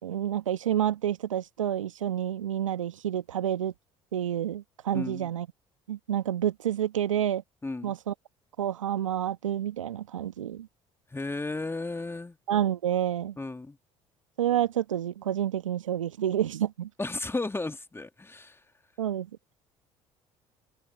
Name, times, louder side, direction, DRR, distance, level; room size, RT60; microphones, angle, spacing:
voice 1, 0.0-3.7 4.1-5.5 5.9-7.4 7.8-8.1 8.6-10.7 12.5-13.4 14.4-16.9 19.0-19.3, right 11 dB, 85° right, 1.7 m, -29 dB
voice 2, 4.9-5.3 7.6-7.9 11.1-12.4 13.4-13.8 17.0-18.6, left 2 dB, 15° left, 2.6 m, -34 dB
figure-of-eight pair, 55°, 16 cm